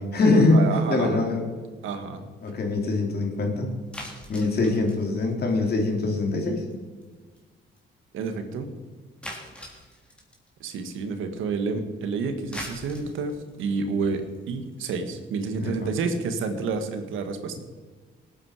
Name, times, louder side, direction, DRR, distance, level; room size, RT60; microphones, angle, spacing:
voice 1, 0.0-1.4 2.4-3.7 4.3-6.6 15.6-15.9, left 2 dB, 55° left, 2 dB, 3.2 m, -23 dB
voice 2, 0.5-1.2 1.8-2.3 8.1-8.7 10.6-17.6, right 4 dB, 85° right, 7 dB, 1.7 m, -29 dB
sound 1, 3.9-6.2 6.4-6.7 7.0-7.1 7.4-7.5 7.8-7.9 8.2-8.3 9.2-10.5 12.3-16.6, equal, 5° left, 3.5 m, -41 dB
18.5 x 8.9 x 4.9 m, 1.4 s
cardioid pair, 90°, 20 cm